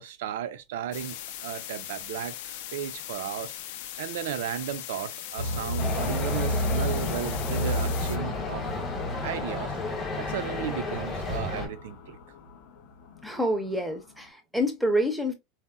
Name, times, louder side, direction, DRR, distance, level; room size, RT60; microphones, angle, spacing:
voice 1, 0.0-3.6 4.0-8.7 9.2-9.7 10.2-12.2, right 10 dB, 85° right, 0.4 m, -35 dB
sound 1, 0.9-8.2, left 11 dB, 70° left, 0.4 m, -39 dB
sound 2, 5.4-14.2, left 1 dB, 85° left, 0.8 m, -33 dB
sound 3, 5.8-11.7, left 3 dB, 20° left, 0.9 m, -33 dB
voice 2, 13.2-15.3, equal, ahead, 0.5 m, -27 dB
4.0 x 2.0 x 2.2 m
supercardioid pair, 170°, 0 cm